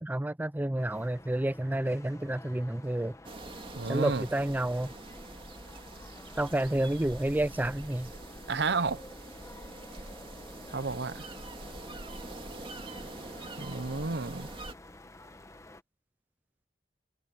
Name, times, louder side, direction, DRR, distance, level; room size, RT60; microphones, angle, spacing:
voice 1, 0.0-3.2 3.9-4.9 6.4-8.1, right 1 dB, 10° right, 0.4 m, -30 dB
sound 1, 0.8-15.8, left 1 dB, 15° left, 1.2 m, -51 dB
sound 2, 3.2-14.7, right 2 dB, 30° right, 2.4 m, -45 dB
voice 2, 3.7-4.2 8.5-9.0 10.7-11.3 13.6-14.5, right 4 dB, 70° right, 0.9 m, -31 dB
head